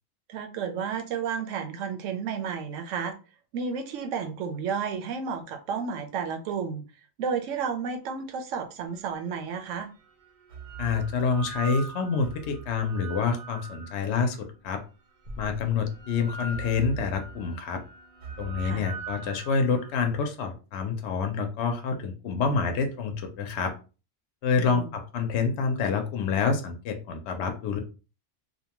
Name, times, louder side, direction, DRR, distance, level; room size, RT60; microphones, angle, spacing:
voice 1, 0.3-3.1 3.5-6.8 7.2-9.9 18.6-18.8 24.5-24.9, right 6 dB, 75° right, 6 dB, 0.9 m, -32 dB
sound 1, 9.2-9.3 10.2-14.5 15.2-19.9, right 4 dB, 55° right, 0.6 m, -41 dB
voice 2, 10.8-14.8 15.4-17.8 18.4-23.7 24.4-27.8, left 5 dB, 65° left, 5 dB, 0.8 m, -27 dB
2.7 x 2.2 x 2.9 m, 0.34 s
omnidirectional pair, 1.3 m